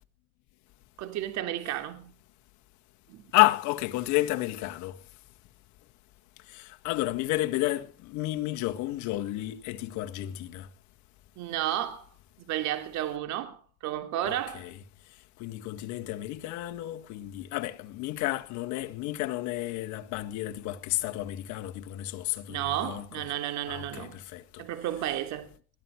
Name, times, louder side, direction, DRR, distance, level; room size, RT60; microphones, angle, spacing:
voice 1, 1.0-2.1 3.1-3.3 11.4-12.1 12.4-14.7 22.5-24.2 24.6-25.5, right 12 dB, 55° right, 3.1 m, -32 dB
voice 2, 3.3-5.0 6.5-10.7 14.3-14.7 15.4-23.0 23.7-24.6, left 17 dB, 60° left, 1.8 m, -31 dB
21.5 x 13.0 x 4.6 m
supercardioid pair, 120°, 33 cm